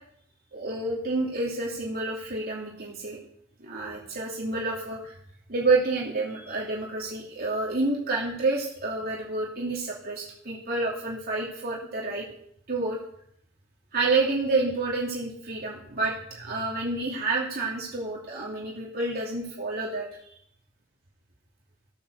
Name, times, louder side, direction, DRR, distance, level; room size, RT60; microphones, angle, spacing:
voice 1, 0.5-3.2 3.6-5.2 5.5-12.3 12.7-13.0 13.9-20.4, right 3 dB, 50° right, -4 dB, 3.1 m, -29 dB
16.0 x 9.1 x 6.7 m, 0.71 s
head